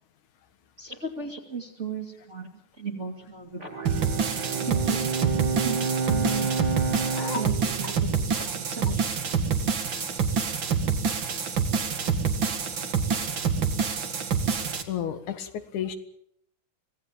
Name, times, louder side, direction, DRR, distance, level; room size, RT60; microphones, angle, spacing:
voice 1, 0.8-3.9 4.7-6.6 7.3-9.4 13.3-13.4, right 5 dB, 25° right, 0 dB, 2.7 m, -37 dB
Bowed string instrument, 3.7-9.2, right 5 dB, 65° right, 4.4 m, -30 dB
sound 1, 3.9-14.8, right 6 dB, 45° right, 2.2 m, -27 dB
voice 2, 14.9-16.0, left 9 dB, 80° left, 9 dB, 3.0 m, -32 dB
25.5 x 18.5 x 7.3 m, 0.71 s
omnidirectional pair, 3.4 m